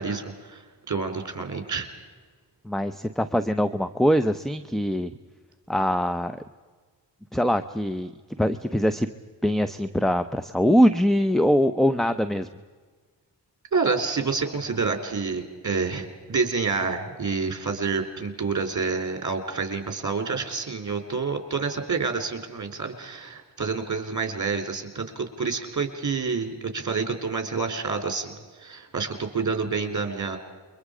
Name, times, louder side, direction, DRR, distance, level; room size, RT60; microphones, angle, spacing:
voice 1, 0.0-1.9 13.7-30.4, right 4 dB, 40° right, 6 dB, 3.7 m, -28 dB
voice 2, 2.6-5.1 5.7-6.4 7.3-8.1 8.4-9.1 9.4-12.5, equal, ahead, 11 dB, 0.8 m, -23 dB
28.5 x 23.5 x 5.1 m, 1.5 s
cardioid pair, 65°, 43 cm